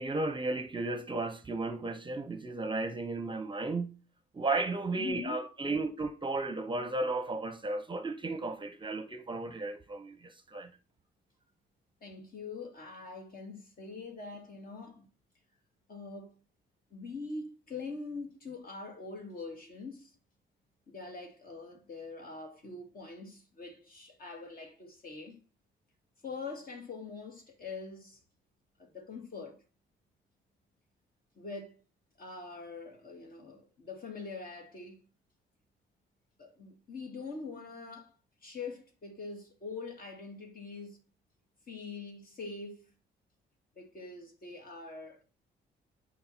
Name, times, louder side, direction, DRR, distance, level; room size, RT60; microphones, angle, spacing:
voice 1, 0.0-3.9 4.3-10.7, right 2 dB, 25° right, 0.8 m, -34 dB
voice 2, 5.0-5.4 12.0-15.1 15.9-16.4 16.9-20.1 20.9-25.4 26.2-28.2 28.8-29.6 31.3-31.8 32.2-35.0 36.4-38.1 38.4-41.0 41.7-42.9 43.8-45.2, left 4 dB, 45° left, 2.5 m, -43 dB
8.5 x 5.5 x 4.5 m
cardioid pair, 90°, 20 cm